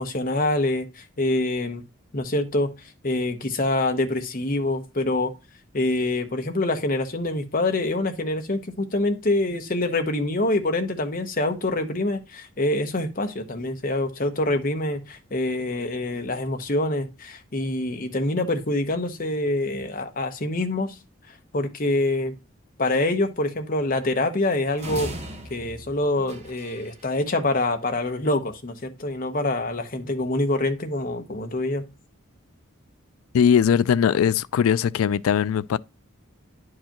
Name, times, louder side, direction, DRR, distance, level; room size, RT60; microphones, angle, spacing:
voice 1, 0.0-1.8 2.1-5.3 5.7-21.0 21.5-22.3 22.8-25.1 25.5-31.8, left 2 dB, 40° left, 0.9 m, -25 dB
sound 1, 24.8-27.0, right 1 dB, 30° right, 1.1 m, -37 dB
voice 2, 33.3-35.8, left 8 dB, 80° left, 0.3 m, -20 dB
10.5 x 4.8 x 2.9 m
head